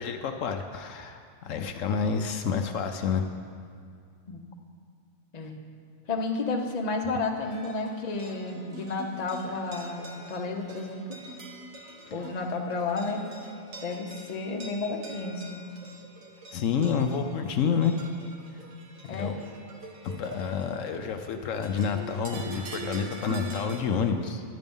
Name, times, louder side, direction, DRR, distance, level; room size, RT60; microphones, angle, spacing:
voice 1, 0.0-3.2 16.5-18.0 19.1-19.4 20.0-24.4, left 6 dB, 75° left, 6 dB, 1.0 m, -29 dB
voice 2, 6.1-11.2 12.1-13.2 13.8-15.7 19.1-19.3, left 3 dB, 35° left, 2 dB, 0.9 m, -32 dB
sound 1, 7.4-23.8, right 1 dB, 75° right, 1.5 m, -44 dB
10.5 x 9.5 x 5.4 m, 2.3 s
omnidirectional pair, 1.4 m